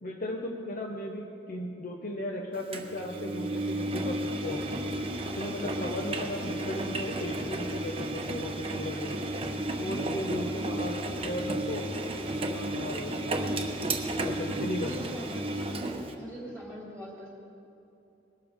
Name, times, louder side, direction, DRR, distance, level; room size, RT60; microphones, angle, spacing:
voice 1, 0.0-4.6 5.3-9.1 9.8-11.9 12.4-13.6 14.2-15.1, left 1 dB, 50° left, 1 dB, 0.9 m, -36 dB
Engine, 2.7-16.1, right 1 dB, 30° right, 0.9 m, -33 dB
voice 2, 10.4-10.8 14.8-15.7 16.1-17.3, right 1 dB, 5° left, -4 dB, 2.5 m, -43 dB
21.0 x 12.5 x 3.6 m, 2.8 s
head